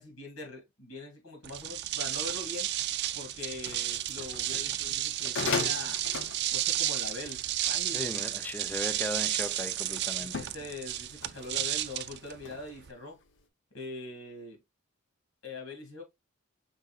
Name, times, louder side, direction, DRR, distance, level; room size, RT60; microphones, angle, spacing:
voice 1, 0.0-2.7 3.1-6.0 6.5-8.1 10.2-13.2 13.7-14.6 15.4-16.0, left 2 dB, 85° left, 2.1 m, -42 dB
sound 1, 1.4-12.9, right 13 dB, 55° right, 0.4 m, -32 dB
sound 2, 3.6-8.6 9.2-9.7 10.2-12.9 13.2-13.4, left 5 dB, 60° left, 0.8 m, -38 dB
voice 2, 7.9-10.5, left 1 dB, 10° left, 0.4 m, -37 dB
5.5 x 3.8 x 2.3 m
head